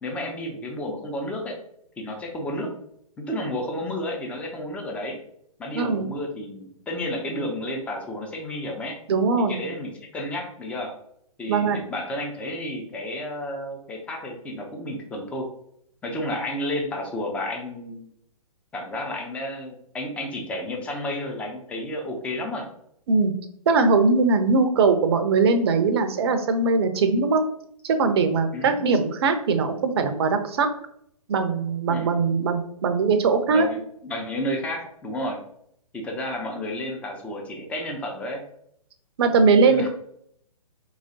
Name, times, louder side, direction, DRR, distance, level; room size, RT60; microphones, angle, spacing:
voice 1, 0.0-1.6 2.0-2.7 3.2-5.2 5.6-9.0 9.4-10.9 11.4-15.5 16.0-18.1 18.7-22.7 28.5-28.8 31.9-32.1 33.5-35.4 35.9-38.4 39.6-39.9, left 1 dB, 5° left, 1 dB, 0.4 m, -31 dB
voice 2, 5.7-6.1 9.1-9.6 11.5-11.8 23.1-23.3 23.7-27.4 27.8-30.7 31.3-33.7 39.2-39.9, right 4 dB, 45° right, 8 dB, 0.5 m, -21 dB
3.9 x 3.0 x 2.7 m, 0.70 s
figure-of-eight pair, 125°, 19 cm